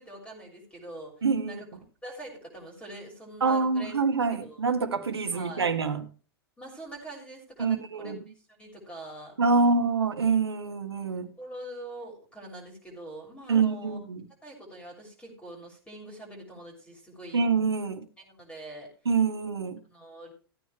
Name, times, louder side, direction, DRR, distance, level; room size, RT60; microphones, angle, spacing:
voice 1, 0.0-1.7 2.0-3.9 4.3-4.7 5.3-5.7 6.6-8.1 8.6-9.4 11.4-14.0 14.4-17.5 18.2-18.9 19.9-20.3, right 1 dB, 10° left, 6.6 m, -44 dB
voice 2, 1.2-1.6 3.4-6.0 7.6-8.2 9.4-11.3 13.5-14.2 17.3-18.1 19.0-19.8, right 4 dB, 85° right, 1.6 m, -26 dB
16.5 x 9.6 x 3.4 m
hypercardioid pair, 105°, 13 cm